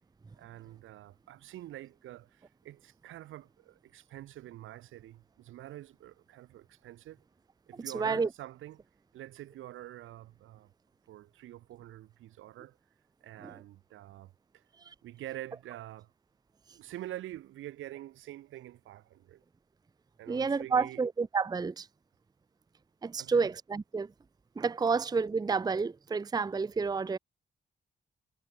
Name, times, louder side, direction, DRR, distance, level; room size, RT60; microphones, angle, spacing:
voice 1, 0.4-7.2 7.7-8.8 9.1-10.7 11.1-12.8 13.2-14.6 15.0-16.1 16.7-19.4 20.2-21.0 23.2-23.5, right 14 dB, 90° right, 2.0 m, -46 dB
voice 2, 7.7-8.3 13.4-13.6 14.9-15.0 20.3-21.9 23.0-24.1 24.6-27.2, right 5 dB, 20° right, 0.5 m, -30 dB
supercardioid pair, 50°, 20 cm